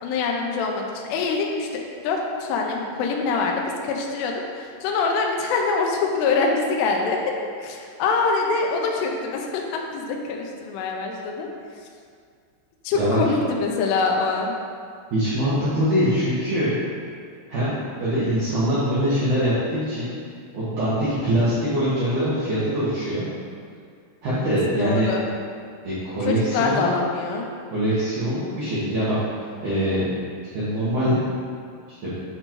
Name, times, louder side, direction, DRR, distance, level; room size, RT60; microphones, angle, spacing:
voice 1, 0.0-11.5 12.8-14.5 24.8-25.2 26.3-27.5, left 4 dB, 85° left, 0 dB, 2.5 m, -24 dB
voice 2, 15.1-16.8 17.5-20.1 20.5-23.3 24.2-25.1 25.8-26.9 27.7-29.2 29.6-30.1 30.4-31.2 31.9-32.1, equal, 80° right, -11 dB, 1.8 m, -23 dB
8.1 x 5.2 x 2.9 m, 2.2 s
omnidirectional pair, 5.5 m